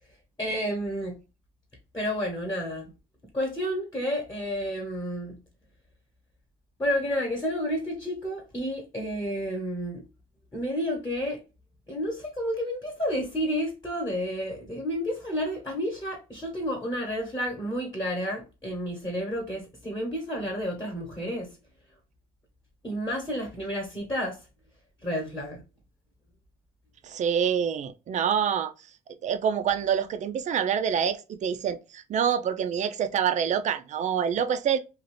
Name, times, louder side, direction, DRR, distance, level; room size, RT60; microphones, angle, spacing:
voice 1, 0.4-1.2 1.9-2.9 3.3-5.4 6.8-10.0 10.5-11.4 11.9-21.5 22.8-24.4 25.0-25.6, equal, 20° left, 1.0 m, -30 dB
voice 2, 27.0-28.7 29.2-34.8, right 8 dB, 45° right, 0.4 m, -26 dB
2.6 x 2.4 x 3.2 m
cardioid pair, 110°, 17 cm